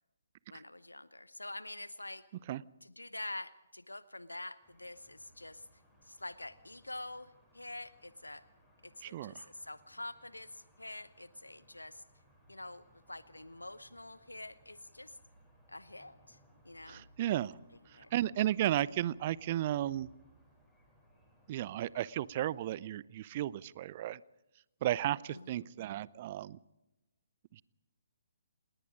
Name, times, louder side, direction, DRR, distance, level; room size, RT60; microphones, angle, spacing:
voice 1, 0.5-2.2 2.8-5.7 6.0-8.4 8.8-12.0 12.5-15.2 15.7-16.4 16.6-17.1 17.9-18.1 25.3-25.7, left 2 dB, 80° left, 15 dB, 0.9 m, -46 dB
sound 1, 4.6-22.6, right 1 dB, 5° left, 7.6 m, -65 dB
voice 2, 9.0-9.5 16.9-17.6 18.1-20.1 21.5-24.2 24.8-26.6 27.5-27.6, right 13 dB, 35° right, 22 dB, 0.6 m, -34 dB
28.0 x 20.5 x 5.1 m, 0.98 s
figure-of-eight pair, 130°, 0 cm